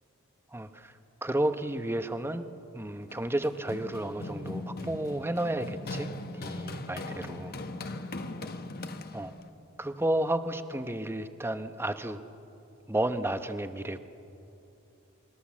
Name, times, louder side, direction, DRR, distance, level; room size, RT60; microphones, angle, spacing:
voice 1, 0.5-0.9 1.2-2.5 2.7-6.1 6.4-7.5 9.1-9.3 9.8-12.2 12.9-14.0, right 1 dB, 10° right, 9 dB, 0.9 m, -32 dB
Run, 3.1-9.5, left 2 dB, 45° left, 1.2 m, -39 dB
28.5 x 21.5 x 7.3 m, 2.8 s
head